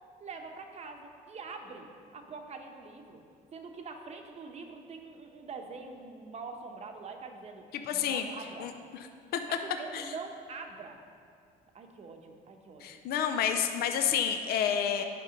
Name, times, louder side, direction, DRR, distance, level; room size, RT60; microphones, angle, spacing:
voice 1, 0.2-3.2 3.5-7.6 7.9-8.7 9.5-11.0 11.7-13.0, right 4 dB, 40° right, 4 dB, 1.0 m, -44 dB
voice 2, 7.7-8.3 8.6-9.1 9.3-9.4 9.9-10.1 12.8-15.0, left 8 dB, 65° left, 7 dB, 0.6 m, -30 dB
9.8 x 5.4 x 5.1 m, 2.3 s
cardioid pair, 110°, 17 cm